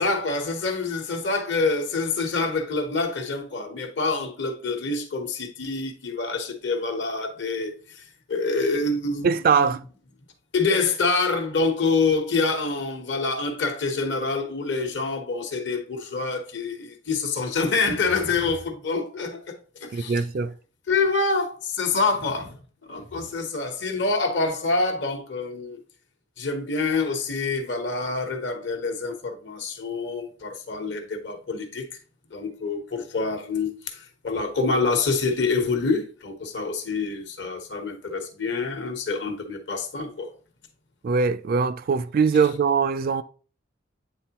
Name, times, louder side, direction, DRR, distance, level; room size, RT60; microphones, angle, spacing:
voice 1, 0.0-8.0 8.3-9.3 9.5-9.8 10.5-19.6 19.8-20.2 20.9-22.6 22.9-25.8 26.4-31.9 32.3-40.3, left 3 dB, 60° left, 1.1 m, -26 dB
voice 2, 9.2-9.8 19.9-20.5 41.0-43.2, right 5 dB, 45° right, 0.3 m, -22 dB
8.8 x 3.8 x 2.9 m
head